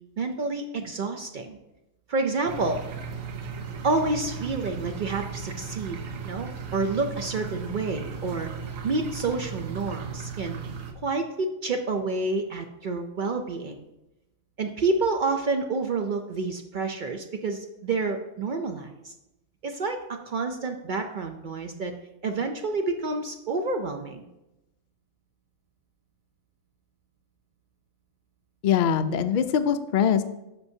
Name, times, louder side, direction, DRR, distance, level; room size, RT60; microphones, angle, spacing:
voice 1, 0.2-1.6 2.1-2.8 3.8-6.0 6.2-8.5 8.8-10.6 11.0-13.7 14.6-19.1 19.6-21.9 22.2-24.2, right 3 dB, 60° right, 5 dB, 0.5 m, -29 dB
sound 1, 2.5-10.9, right 6 dB, 85° right, 1.2 m, -36 dB
voice 2, 28.6-30.2, left 8 dB, 65° left, 9 dB, 0.4 m, -22 dB
10.5 x 6.1 x 2.7 m, 0.95 s
omnidirectional pair, 1.3 m